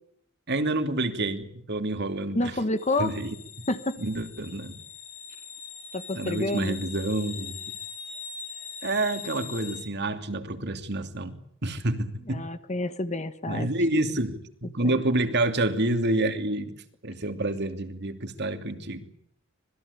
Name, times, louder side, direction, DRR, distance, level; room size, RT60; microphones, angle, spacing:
voice 1, 0.5-2.6 3.0-3.3 4.0-4.8 6.1-7.6 8.8-12.5 13.5-19.1, right 2 dB, 55° right, 8 dB, 2.9 m, -28 dB
voice 2, 2.3-3.1 3.7-3.9 5.9-6.8 12.3-13.7 14.8-14.9, left 2 dB, 35° left, 11 dB, 1.4 m, -28 dB
sound 1, 2.8-9.8, left 6 dB, 85° left, 5.5 m, -41 dB
26.0 x 20.5 x 8.4 m, 0.69 s
head